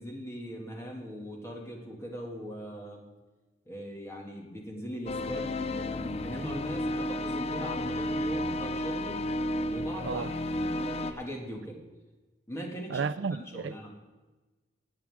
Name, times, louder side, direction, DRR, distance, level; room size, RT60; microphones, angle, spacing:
voice 1, 0.0-3.0 3.7-9.2 9.7-11.8 12.5-13.1 13.5-13.9, equal, 15° left, 2.1 m, -40 dB
sound 1, 5.1-11.1, left 1 dB, 35° left, 0.4 m, -32 dB
voice 2, 12.9-13.8, right 5 dB, 75° right, 0.4 m, -32 dB
18.5 x 8.8 x 3.6 m
head